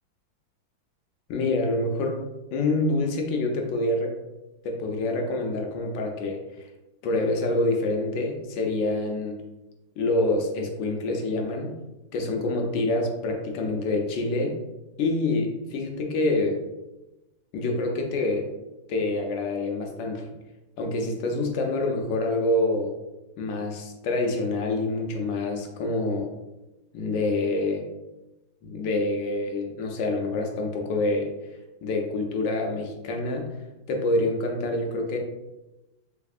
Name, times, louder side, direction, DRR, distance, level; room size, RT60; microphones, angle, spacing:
voice 1, 1.3-2.2 2.5-4.1 4.6-6.7 7.0-9.4 10.0-11.8 12.1-14.6 15.0-16.6 17.5-18.5 18.9-20.3 20.8-22.9 23.4-26.3 26.9-27.9 28.6-31.3 31.8-33.6 33.9-35.2, left 2 dB, 75° left, 2 dB, 1.3 m, -26 dB
3.4 x 3.4 x 2.3 m, 1.0 s
omnidirectional pair, 2.1 m